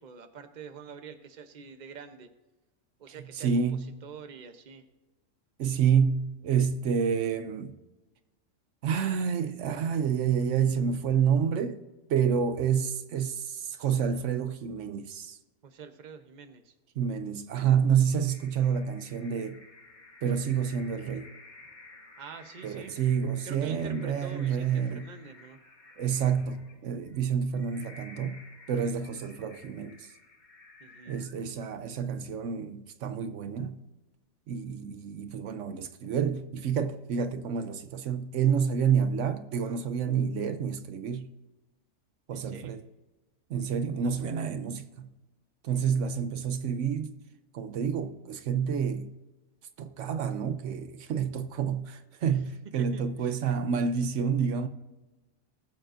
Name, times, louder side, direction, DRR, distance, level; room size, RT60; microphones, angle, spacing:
voice 1, 0.0-2.3 3.0-3.5 4.0-4.8 15.6-16.7 22.2-22.9 23.4-25.6 30.8-31.2 42.3-42.8 52.3-52.4 52.8-53.3, right 6 dB, 40° right, 0.9 m, -46 dB
voice 2, 3.1-4.0 5.6-7.7 8.8-11.8 12.1-15.4 17.0-19.6 20.2-21.3 22.6-25.1 26.0-28.4 28.7-30.1 31.1-33.8 34.5-41.3 42.3-42.8 43.5-45.1 45.6-47.2 47.5-49.2 49.8-54.7, right 7 dB, 75° right, 1.0 m, -28 dB
sound 1, 18.3-31.8, left 3 dB, 40° left, 1.3 m, -53 dB
19.5 x 7.6 x 2.6 m
omnidirectional pair, 1.3 m